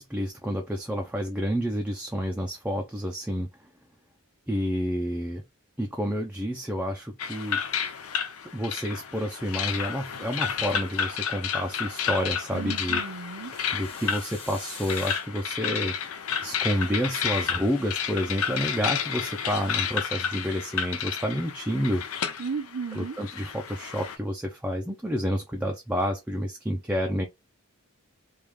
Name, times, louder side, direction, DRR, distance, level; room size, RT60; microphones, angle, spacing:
voice 1, 0.0-3.5 4.5-5.4 5.8-7.6 8.5-13.0 13.7-22.0 22.9-27.3, equal, 5° right, 0.4 m, -29 dB
sound 1, 7.2-24.2, left 7 dB, 80° left, 0.5 m, -31 dB
sound 2, 8.4-9.3 10.3-11.5 13.5-15.5, left 4 dB, 25° left, 1.0 m, -47 dB
voice 2, 12.5-13.5 22.4-23.2, right 5 dB, 85° right, 0.8 m, -34 dB
3.4 x 2.4 x 3.1 m
head